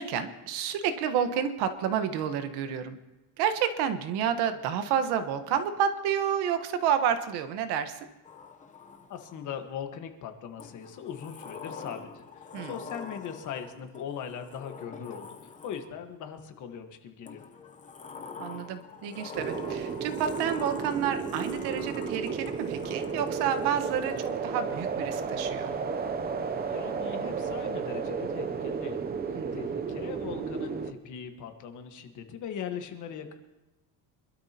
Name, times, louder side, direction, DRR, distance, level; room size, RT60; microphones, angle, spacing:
voice 1, 0.0-3.0 3.4-8.1 12.5-12.8 18.4-25.7 29.3-29.7, right 8 dB, 75° right, 9 dB, 1.3 m, -30 dB
Sliding door, 8.2-9.6 10.6-16.1 17.2-24.4, left 5 dB, 20° left, 0.8 m, -46 dB
voice 2, 9.1-17.4 26.6-29.0 29.3-33.3, left 8 dB, 50° left, 6 dB, 1.5 m, -40 dB
sound 1, 19.3-30.9, right 5 dB, 25° right, 0.6 m, -33 dB
25.5 x 12.5 x 2.9 m, 1.1 s
cardioid pair, 160°, 40 cm